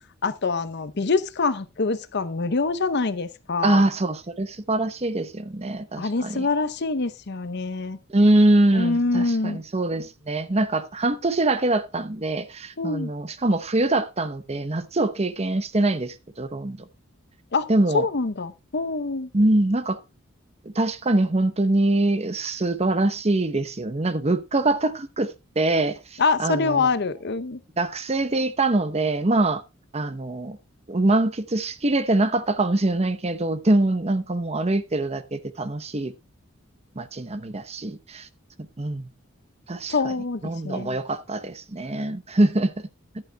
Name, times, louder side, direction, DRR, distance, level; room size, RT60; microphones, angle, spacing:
voice 1, 0.2-3.8 6.0-8.0 8.7-9.6 12.8-13.1 17.5-17.7 17.9-19.3 26.2-27.6 39.9-41.0, left 4 dB, 55° left, 0.8 m, -25 dB
voice 2, 3.6-6.5 8.1-16.8 17.7-18.1 19.3-20.0 20.7-26.9 27.8-29.6 29.9-30.6 30.9-36.1 37.0-38.3 38.8-39.1 39.7-40.1 40.4-42.7, right 2 dB, 30° right, 0.8 m, -23 dB
14.0 x 11.0 x 2.3 m
head